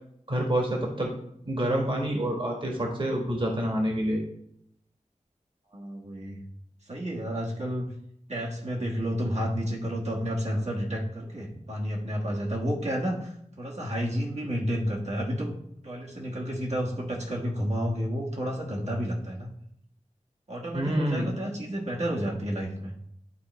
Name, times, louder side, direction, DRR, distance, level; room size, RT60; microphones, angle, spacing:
voice 1, 0.3-1.1 1.4-4.2 20.7-21.3, right 1 dB, 40° right, 0 dB, 1.5 m, -27 dB
voice 2, 5.7-6.4 6.8-7.9 8.3-15.6 15.8-19.5 20.5-23.0, equal, 60° right, -4 dB, 1.5 m, -31 dB
11.0 x 3.9 x 3.2 m, 0.73 s
wide cardioid pair, 70°, 13 cm